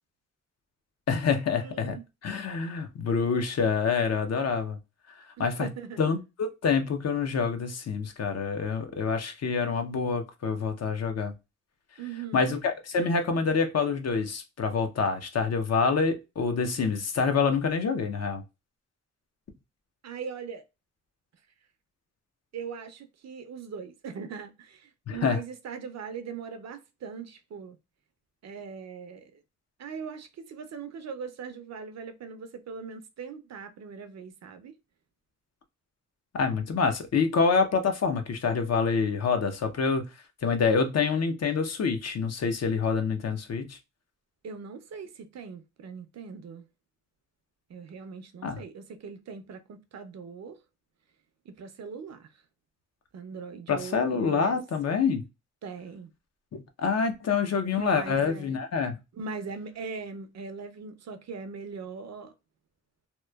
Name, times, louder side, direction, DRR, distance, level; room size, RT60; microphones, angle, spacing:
voice 1, 1.1-2.0 2.2-4.8 5.2-5.7 6.0-11.3 12.3-18.4 25.1-25.4 36.3-40.1 40.4-43.8 48.4-48.6 53.7-55.3 56.5-59.0, left 5 dB, 55° left, 0.6 m, -27 dB
voice 2, 1.6-2.0 5.4-6.0 12.0-12.5 20.0-20.6 22.5-27.8 28.4-29.4 29.8-34.7 44.4-46.7 47.7-50.6 51.5-52.3 53.1-54.6 55.6-56.1 57.8-58.5 59.1-62.3, right 5 dB, 60° right, 0.5 m, -40 dB
2.9 x 2.1 x 2.2 m
cardioid pair, 85°, 31 cm